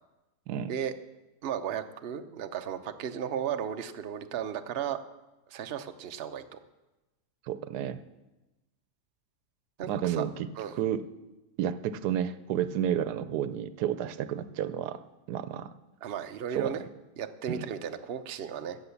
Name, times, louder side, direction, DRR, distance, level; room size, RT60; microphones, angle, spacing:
voice 1, 1.4-5.0 5.5-6.6 9.8-10.3 10.6-10.8 16.0-16.9 17.2-18.8, right 8 dB, 50° right, 7 dB, 0.8 m, -35 dB
voice 2, 7.5-8.0 9.9-10.5 10.7-11.0 11.6-15.0 15.3-15.7 16.5-16.7 17.5-17.7, right 10 dB, 85° right, 13 dB, 1.2 m, -31 dB
16.0 x 6.9 x 7.1 m, 1.1 s
omnidirectional pair, 1.7 m